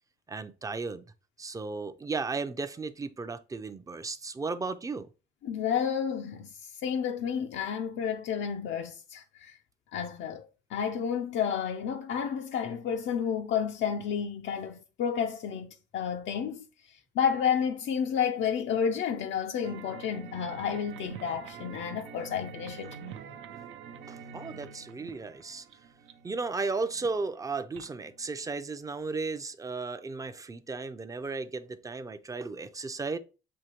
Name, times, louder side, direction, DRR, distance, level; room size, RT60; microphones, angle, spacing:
voice 1, 0.3-1.0 1.4-5.1 24.1-25.7 26.2-33.2, right 4 dB, 15° right, 0.4 m, -35 dB
voice 2, 5.4-9.6 9.9-10.4 10.7-23.0, left 7 dB, 70° left, 0.5 m, -31 dB
sound 1, 19.6-28.6, right 6 dB, 80° right, 0.6 m, -46 dB
6.3 x 2.7 x 2.9 m
cardioid pair, 90°, 20 cm